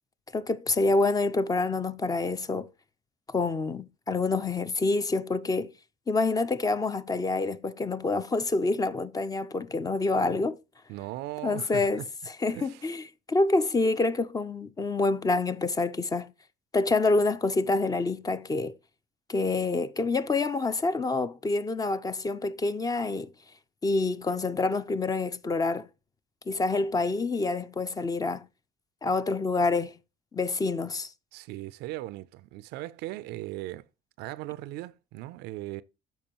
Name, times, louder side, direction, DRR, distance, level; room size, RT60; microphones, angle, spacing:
voice 1, 0.3-2.7 3.3-5.7 6.1-10.6 11.4-12.0 12.4-13.0 13.3-16.3 16.7-18.7 19.3-23.3 23.8-25.9 26.5-28.4 29.0-30.0 30.3-31.1, left 3 dB, 20° left, 0.5 m, -27 dB
voice 2, 10.9-12.1 12.5-12.9 31.3-33.9 34.2-35.8, right 16 dB, 90° right, 0.4 m, -38 dB
13.0 x 4.7 x 2.9 m
cardioid pair, 110°, 17 cm